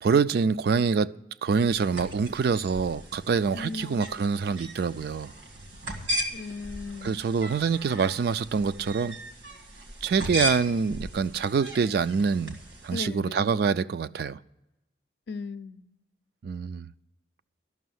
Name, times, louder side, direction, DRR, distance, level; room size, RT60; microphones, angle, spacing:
voice 1, 0.0-5.3 7.0-9.2 10.0-12.6 12.8-14.4 16.4-16.9, right 5 dB, 55° right, 0.3 m, -25 dB
sound 1, 1.7-13.0, equal, 85° right, 1.9 m, -37 dB
voice 2, 3.5-4.1 6.3-7.2 12.9-13.5 15.3-15.9, left 4 dB, 60° left, 0.5 m, -37 dB
12.5 x 6.2 x 9.3 m
head